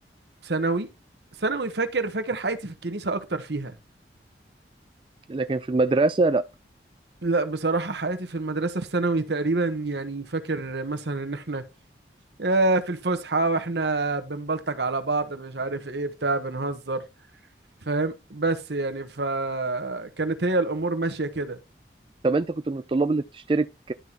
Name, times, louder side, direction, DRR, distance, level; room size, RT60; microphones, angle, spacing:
voice 1, 0.4-0.9 1.4-3.8 7.2-11.6 12.4-17.1 17.8-21.6, right 3 dB, 70° right, 1.2 m, -27 dB
voice 2, 5.3-6.4 22.2-23.9, right 3 dB, 30° right, 0.4 m, -23 dB
11.5 x 4.1 x 4.4 m
head